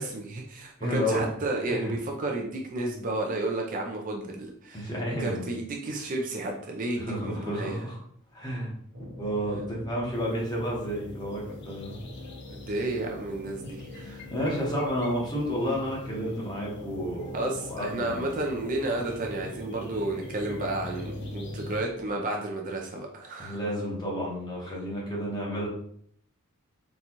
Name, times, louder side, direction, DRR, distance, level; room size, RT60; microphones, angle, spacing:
voice 1, 0.0-4.9 5.2-7.9 12.5-14.2 17.3-23.6, right 2 dB, 40° right, 1 dB, 0.4 m, -32 dB
voice 2, 0.8-1.2 1.7-1.9 4.7-5.5 7.0-8.0 8.3-8.7 9.2-12.0 13.6-13.7 14.1-17.3 17.6-18.3 23.4-25.7, equal, 20° left, -4 dB, 1.0 m, -31 dB
sound 1, 8.9-22.1, left 2 dB, 70° right, 0.9 m, -45 dB
sound 2, 10.1-21.8, left 2 dB, 50° left, 0.5 m, -44 dB
4.0 x 2.3 x 2.9 m, 0.65 s
head